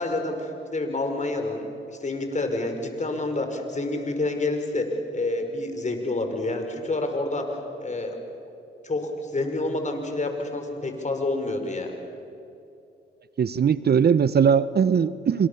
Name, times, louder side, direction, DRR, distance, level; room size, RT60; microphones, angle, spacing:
voice 1, 0.0-8.2 8.8-11.9, left 2 dB, 35° left, 5 dB, 5.5 m, -28 dB
voice 2, 13.4-15.5, right 7 dB, 50° right, 16 dB, 0.9 m, -20 dB
27.5 x 26.5 x 7.1 m, 2.7 s
supercardioid pair, 55°, 21 cm